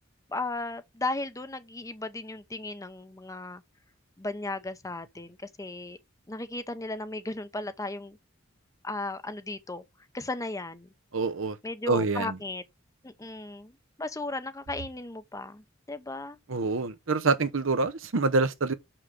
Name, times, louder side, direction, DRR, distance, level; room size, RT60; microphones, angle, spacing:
voice 1, 0.3-3.6 4.2-6.0 6.3-8.2 8.8-9.8 10.1-10.9 11.6-12.6 13.0-13.7 14.0-16.4, left 2 dB, 15° left, 0.8 m, -35 dB
voice 2, 11.1-11.6 11.9-12.4 16.5-18.7, right 3 dB, 70° right, 0.9 m, -26 dB
6.5 x 5.9 x 3.6 m
head